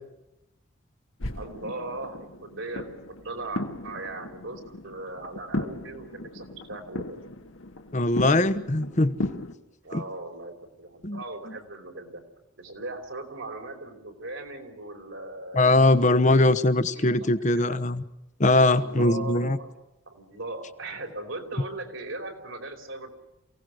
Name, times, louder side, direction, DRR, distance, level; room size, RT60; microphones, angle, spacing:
sound 1, 1.2-9.5, left 1 dB, 75° left, 1.6 m, -36 dB
voice 1, 1.3-7.2 9.8-12.2 12.6-15.6 16.2-16.4 16.9-17.8 18.7-19.7 20.1-23.1, right 2 dB, 70° right, 3 dB, 4.9 m, -38 dB
voice 2, 7.9-9.1 9.9-10.0 11.0-11.6 15.5-18.0 18.4-19.6, left 2 dB, 35° left, 12 dB, 1.1 m, -21 dB
28.5 x 18.0 x 6.4 m, 0.92 s
head